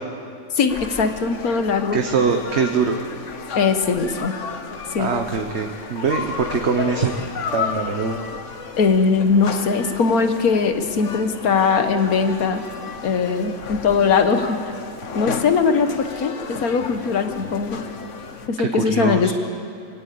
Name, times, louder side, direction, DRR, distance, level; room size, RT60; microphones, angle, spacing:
voice 1, 0.5-2.0 3.6-4.3 4.9-5.1 8.8-12.6 13.0-14.6 15.2-17.8 18.5-19.3, left 5 dB, 90° left, 8 dB, 1.7 m, -20 dB
sound 1, 0.7-18.5, left 5 dB, 60° left, 1.4 m, -33 dB
voice 2, 1.9-3.0 5.0-7.1 7.5-8.2 18.6-19.3, right 5 dB, 55° right, 5 dB, 1.3 m, -22 dB
23.5 x 16.5 x 8.5 m, 2.5 s
omnidirectional pair, 1.5 m